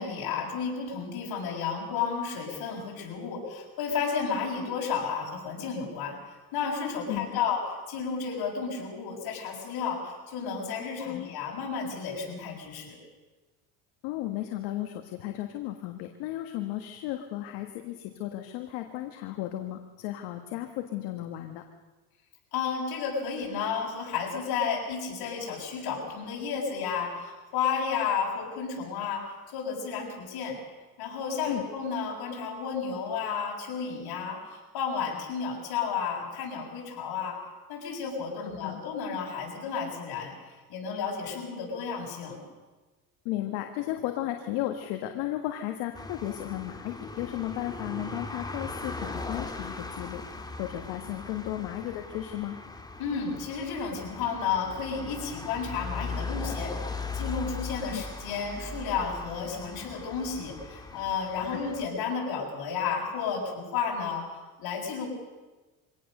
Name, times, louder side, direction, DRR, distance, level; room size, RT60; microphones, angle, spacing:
voice 1, 0.0-6.2 6.5-13.0 22.5-30.6 31.0-37.4 37.7-40.3 40.7-42.4 53.0-64.3 64.6-65.1, left 6 dB, 65° left, -1 dB, 7.4 m, -32 dB
voice 2, 7.1-7.4 11.0-11.3 14.0-21.6 31.4-31.6 38.6-38.8 43.2-52.6 57.9-58.0, left 14 dB, 80° left, 5 dB, 1.7 m, -34 dB
sound 1, 45.9-61.9, left 3 dB, 10° left, 2.1 m, -39 dB
24.5 x 17.5 x 6.7 m, 1.2 s
cardioid pair, 110°, 40 cm